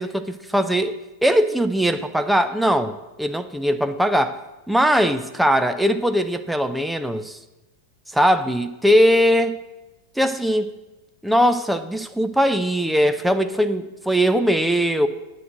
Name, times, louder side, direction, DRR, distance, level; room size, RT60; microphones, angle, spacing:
voice 1, 0.0-4.4 4.7-7.4 8.1-9.6 10.2-10.7 11.2-15.1, equal, ahead, 9 dB, 0.6 m, -20 dB
9.5 x 6.6 x 7.5 m, 1.0 s
figure-of-eight pair, 90°, 0 cm